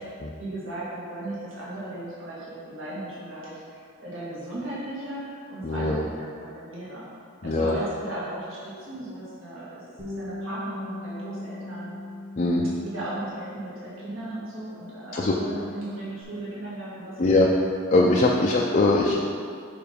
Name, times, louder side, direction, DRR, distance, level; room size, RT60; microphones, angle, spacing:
voice 1, 0.0-7.1 7.4-12.0 12.8-17.5 18.2-18.4, right 1 dB, 75° right, -8 dB, 1.6 m, -36 dB
voice 2, 5.6-6.0 7.4-7.8 12.4-12.6 15.1-15.3 17.2-17.5 17.9-19.1, left 2 dB, 40° left, -2 dB, 0.5 m, -21 dB
Bass guitar, 10.0-14.7 15.0-16.2, left 2 dB, 35° right, 1.2 m, -40 dB
5.2 x 4.8 x 5.1 m, 2.2 s
head